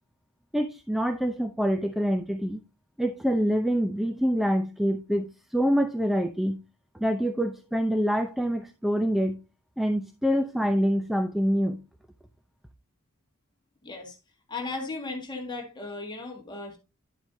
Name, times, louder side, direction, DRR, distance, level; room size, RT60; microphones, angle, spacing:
voice 1, 0.5-2.6 3.0-6.6 6.9-9.4 9.8-11.8, equal, ahead, 0.6 m, -26 dB
voice 2, 13.8-14.2 14.5-16.8, left 3 dB, 20° left, 1.9 m, -36 dB
10.5 x 7.9 x 2.7 m
head